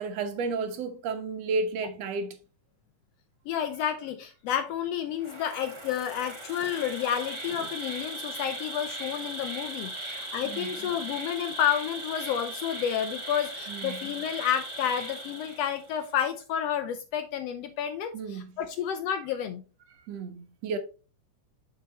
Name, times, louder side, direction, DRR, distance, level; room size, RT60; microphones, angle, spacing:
voice 1, 0.0-2.4 10.0-10.7 13.7-14.0 18.1-18.5 20.1-20.8, right 4 dB, 65° right, 2.0 m, -32 dB
voice 2, 3.5-19.6, left 9 dB, 80° left, 1.4 m, -30 dB
Insect, 5.2-16.0, right 1 dB, 25° right, 0.6 m, -38 dB
6.8 x 6.4 x 2.9 m
omnidirectional pair, 3.5 m